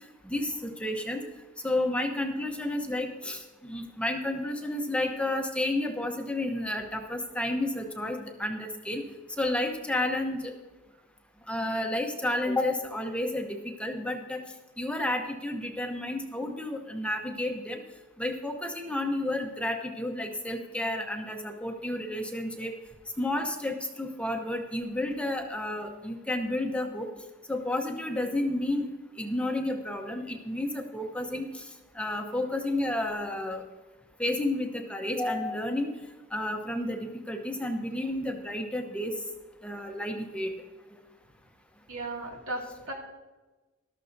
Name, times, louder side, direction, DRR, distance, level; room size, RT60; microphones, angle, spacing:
voice 1, 0.2-1.2 1.6-9.0 9.4-10.5 11.5-14.4 14.8-17.8 18.2-22.7 23.2-27.1 27.5-28.9 29.2-31.6 31.9-33.6 34.2-35.9 36.3-39.1 39.6-40.5, left 1 dB, 5° left, 3 dB, 0.8 m, -31 dB
voice 2, 41.9-42.9, right 2 dB, 75° right, -1 dB, 2.4 m, -36 dB
13.5 x 12.5 x 2.7 m, 1.2 s
head